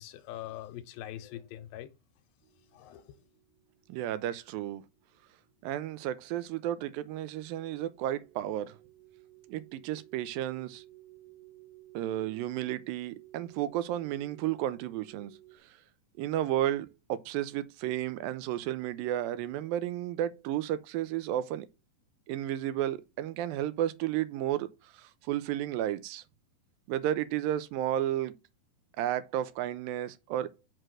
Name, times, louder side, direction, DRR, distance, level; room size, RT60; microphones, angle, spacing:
voice 1, 0.0-1.9 2.7-3.2, left 12 dB, 85° left, 2.6 m, -43 dB
sound 1, 2.4-15.6, right 16 dB, 65° right, 2.4 m, -57 dB
voice 2, 3.9-4.8 5.6-8.7 9.5-10.8 11.9-15.3 16.2-21.7 22.3-26.2 26.9-28.3 29.0-30.5, right 12 dB, 80° right, 2.3 m, -32 dB
6.1 x 4.7 x 6.3 m
omnidirectional pair, 4.2 m